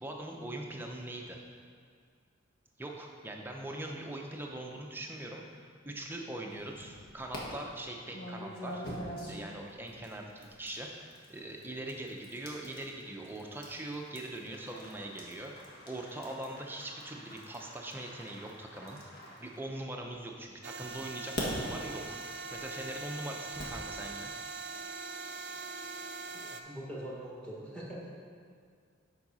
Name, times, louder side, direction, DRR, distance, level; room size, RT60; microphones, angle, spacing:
voice 1, 0.0-1.4 2.8-8.8 9.2-10.9 11.3-15.5 15.9-19.0 19.4-22.2 22.5-24.3, right 1 dB, 10° right, 0 dB, 0.7 m, -41 dB
sound 1, 6.5-7.4 8.1-20.2 20.8-23.8, equal, 50° left, 1.5 m, -45 dB
sound 2, 20.6-26.6, right 3 dB, 55° right, 0.6 m, -42 dB
voice 2, 26.4-28.1, right 1 dB, 5° left, -5 dB, 1.4 m, -43 dB
7.6 x 4.8 x 5.5 m, 2.1 s
head